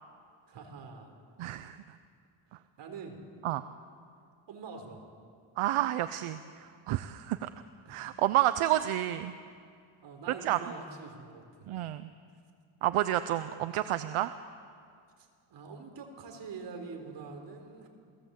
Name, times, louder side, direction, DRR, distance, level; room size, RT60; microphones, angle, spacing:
voice 1, 0.5-1.1 2.8-3.2 4.5-5.0 7.3-7.4 7.8-8.1 10.0-11.7 15.2-17.9, right 4 dB, 60° right, 4 dB, 4.1 m, -45 dB
voice 2, 1.4-1.8 3.4-3.6 5.6-7.5 7.9-9.3 10.4-10.6 11.7-12.1 12.8-14.3, right 14 dB, 80° right, 11 dB, 0.9 m, -30 dB
29.0 x 18.0 x 8.3 m, 2.2 s
cardioid pair, 175°, 49 cm